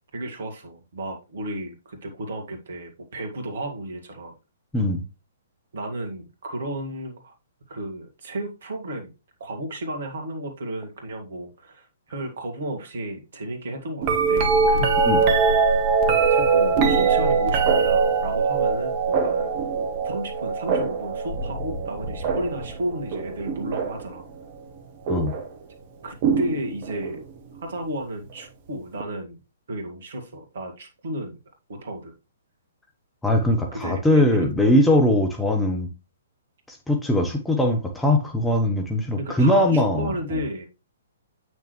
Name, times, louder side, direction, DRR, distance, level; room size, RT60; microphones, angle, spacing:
voice 1, 0.1-4.3 5.7-7.3 7.7-9.1 9.4-15.0 16.3-19.5 20.0-24.3 26.0-27.2 27.6-29.4 29.7-31.4 31.7-32.1 33.7-34.5 39.2-40.7, right 1 dB, 55° right, 2.3 m, -33 dB
sound 1, 14.0-24.1 25.1-25.5 26.2-27.2 29.0-29.1, right 5 dB, 35° right, 1.4 m, -22 dB
voice 2, 33.2-35.9 36.7-40.1, left 1 dB, 5° left, 1.0 m, -21 dB
8.5 x 6.3 x 3.1 m
figure-of-eight pair, 120°, 0 cm